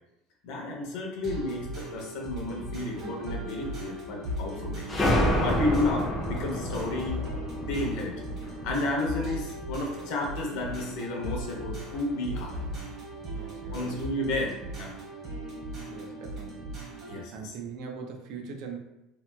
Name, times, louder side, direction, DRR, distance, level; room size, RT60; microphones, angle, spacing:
voice 1, 0.4-4.9 5.4-7.2 7.7-8.2 8.6-12.6 13.7-14.9 17.1-17.5, left 2 dB, 65° left, 0 dB, 0.7 m, -32 dB
sound 1, 1.2-17.2, right 2 dB, 45° right, 1.2 m, -39 dB
sound 2, 2.3-14.1, left 4 dB, 80° right, 1.2 m, -42 dB
sound 3, 4.9-9.3, left 1 dB, 15° left, 0.5 m, -29 dB
voice 2, 13.3-14.0 15.9-16.7 17.3-18.8, right 5 dB, 60° right, 3 dB, 0.5 m, -41 dB
2.9 x 2.8 x 2.2 m, 0.93 s
cardioid pair, 150°, 0 cm